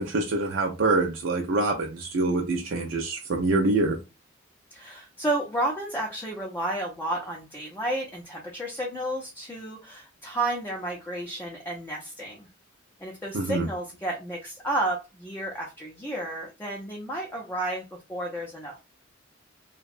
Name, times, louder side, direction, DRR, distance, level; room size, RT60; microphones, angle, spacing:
voice 1, 0.0-4.0 13.3-13.7, right 2 dB, 70° right, 0.4 m, -25 dB
voice 2, 4.7-12.5 13.0-18.8, right 1 dB, 10° left, 0.5 m, -32 dB
2.7 x 2.1 x 2.4 m
head